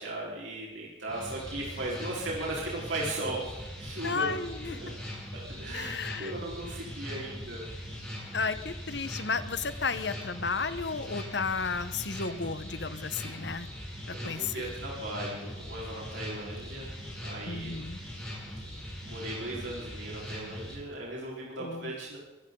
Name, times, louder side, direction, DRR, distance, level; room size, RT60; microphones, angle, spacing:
voice 1, 0.0-4.2 4.7-4.9 5.3-7.7 13.2-13.5 14.1-16.9 17.2-17.7 19.0-22.2, right 2 dB, 80° right, -4 dB, 4.4 m, -37 dB
sound 1, 1.1-20.8, equal, 5° left, 6.4 m, -41 dB
voice 2, 4.0-4.8 5.7-6.3 8.3-13.7 14.2-14.7 17.5-18.0 21.6-21.9, left 4 dB, 65° left, 12 dB, 1.1 m, -33 dB
23.0 x 16.0 x 3.9 m, 1.2 s
head